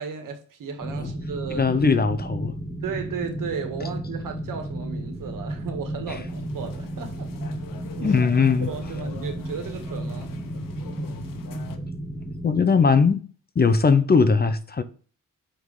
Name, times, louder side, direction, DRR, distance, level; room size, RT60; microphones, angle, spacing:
voice 1, 0.0-1.7 2.8-7.3 8.0-8.3 8.6-10.3, right 6 dB, 75° right, 1.8 m, -34 dB
sound 1, 0.8-12.5, right 1 dB, 5° left, 2.4 m, -33 dB
voice 2, 1.6-2.6 6.1-6.2 8.0-8.7 12.4-13.2 13.6-14.8, left 5 dB, 30° left, 0.7 m, -20 dB
sound 2, 6.3-11.8, left 7 dB, 90° left, 1.0 m, -44 dB
6.3 x 4.8 x 5.4 m
cardioid pair, 100°, 32 cm